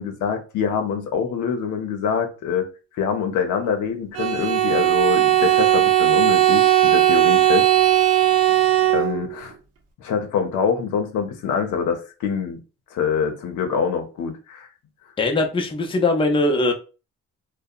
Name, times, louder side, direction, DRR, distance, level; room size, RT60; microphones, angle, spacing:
voice 1, 0.0-2.7 3.0-7.7 8.9-9.5 10.0-12.6 12.9-14.7, left 6 dB, 80° left, 0.6 m, -25 dB
Bowed string instrument, 4.1-9.4, right 14 dB, 50° right, 0.6 m, -17 dB
voice 2, 15.2-16.7, left 2 dB, 15° left, 0.5 m, -20 dB
2.7 x 2.1 x 2.3 m
cardioid pair, 90°, 30 cm